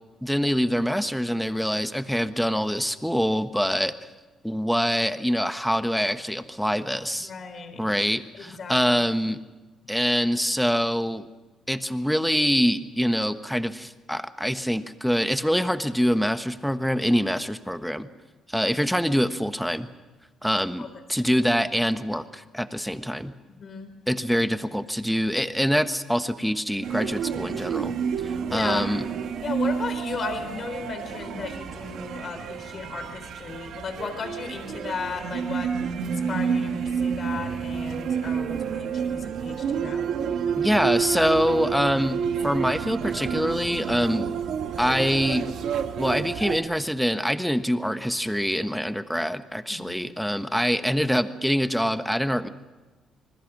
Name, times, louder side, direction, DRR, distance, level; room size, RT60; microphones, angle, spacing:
voice 1, 0.2-3.9 4.4-7.3 7.8-9.4 9.9-11.3 11.7-18.1 18.5-19.9 20.4-23.3 24.1-27.9 28.5-29.0 40.5-42.2 42.4-44.3 44.8-45.5 46.0-52.5, equal, ahead, 9 dB, 1.3 m, -25 dB
voice 2, 7.2-7.9 8.3-9.0 20.8-21.5 23.5-23.9 28.4-28.8 29.4-40.1 49.7-50.0, left 5 dB, 50° left, 7 dB, 3.9 m, -36 dB
sound 1, 26.8-46.6, right 7 dB, 75° right, 1.5 m, -29 dB
27.0 x 21.0 x 6.2 m, 1.2 s
cardioid pair, 90°, 0 cm